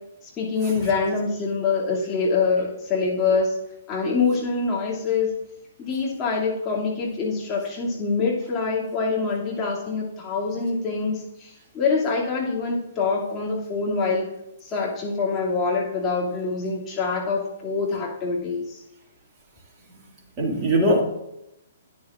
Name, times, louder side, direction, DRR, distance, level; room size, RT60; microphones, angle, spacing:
voice 1, 0.4-3.6 3.9-5.3 5.8-14.3 14.6-18.8, left 4 dB, 20° left, -5 dB, 2.4 m, -25 dB
voice 2, 20.4-21.0, right 1 dB, 25° right, -1 dB, 2.1 m, -21 dB
12.0 x 9.4 x 2.4 m, 0.86 s
figure-of-eight pair, 120°, 0 cm